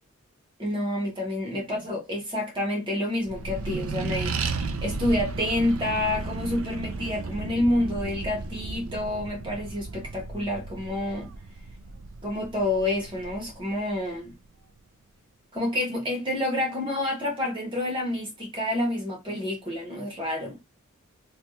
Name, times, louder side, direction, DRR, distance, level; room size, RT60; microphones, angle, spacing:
voice 1, 0.6-11.3 12.2-14.3 15.5-20.6, left 1 dB, 25° right, 1.3 m, -28 dB
Accelerating revving vroom, 3.2-14.2, right 3 dB, 70° right, 0.5 m, -34 dB
3.2 x 2.4 x 3.1 m
head